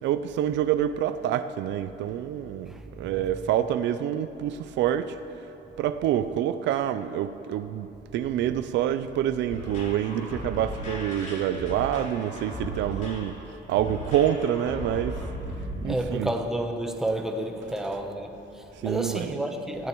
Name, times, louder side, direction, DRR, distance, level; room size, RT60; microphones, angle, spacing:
voice 1, 0.0-5.2 5.8-13.4 13.7-15.2 15.8-16.3 18.8-19.4, right 10 dB, 65° right, 0.5 m, -27 dB
sound 1, 9.5-15.9, equal, 40° left, 2.9 m, -36 dB
voice 2, 15.8-19.9, right 1 dB, ahead, 0.9 m, -30 dB
18.5 x 15.5 x 3.1 m
cardioid pair, 155°, 20 cm